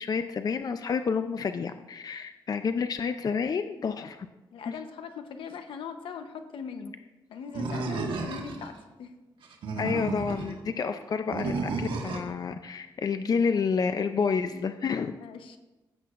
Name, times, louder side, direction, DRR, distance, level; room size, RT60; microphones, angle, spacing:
voice 1, 0.0-4.3 4.7-4.8 9.8-15.2, left 5 dB, 50° left, 9 dB, 0.5 m, -29 dB
voice 2, 4.5-6.9 7.3-9.1 10.8-11.0 15.2-15.6, left 6 dB, 90° left, 7 dB, 0.9 m, -41 dB
Animal, 7.5-8.7 9.4-10.5 11.3-12.3, right 3 dB, 80° right, 1.4 m, -32 dB
15.5 x 8.0 x 2.5 m, 1.1 s
cardioid pair, 85°, 9 cm